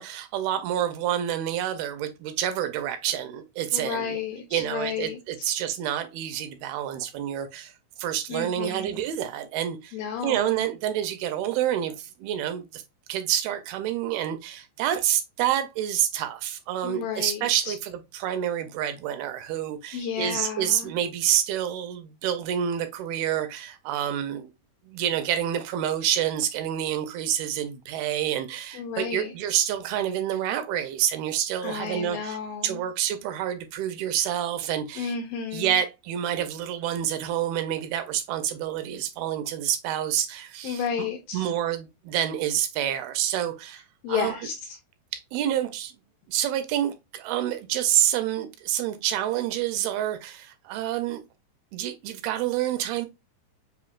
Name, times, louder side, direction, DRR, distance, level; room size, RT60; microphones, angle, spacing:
voice 1, 0.0-4.2 4.5-7.7 8.0-10.0 10.2-12.8 13.1-24.5 24.9-32.4 32.6-35.2 35.5-41.1 41.3-44.4 45.1-45.9 46.3-51.2 51.7-53.1, right 11 dB, 80° right, 2.3 m, -28 dB
voice 2, 3.7-5.5 8.3-9.0 9.9-10.7 16.8-17.7 19.9-20.9 28.7-29.3 31.6-32.8 35.0-35.8 40.6-41.5 44.0-44.8, left 7 dB, 80° left, 2.1 m, -32 dB
7.0 x 2.7 x 2.3 m
omnidirectional pair, 4.6 m